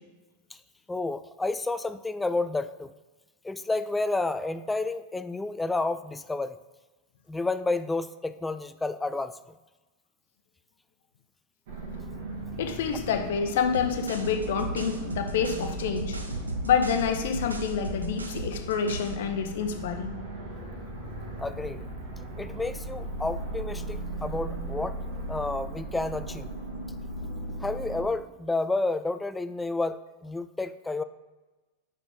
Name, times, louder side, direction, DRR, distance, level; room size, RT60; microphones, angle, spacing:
voice 1, 0.9-2.9 3.4-6.6 7.3-9.4 21.4-21.9 22.4-25.0 25.3-26.5 27.6-31.0, left 2 dB, 10° left, 13 dB, 0.3 m, -30 dB
sound 1, 11.7-28.1, right 2 dB, 55° right, 1.5 m, -37 dB
voice 2, 12.6-16.1 16.6-20.2, left 6 dB, 55° left, 6 dB, 0.8 m, -27 dB
sound 2, 13.7-19.2, right 2 dB, 80° right, 0.6 m, -37 dB
6.8 x 5.0 x 3.8 m, 1.2 s
figure-of-eight pair, 90°, 0 cm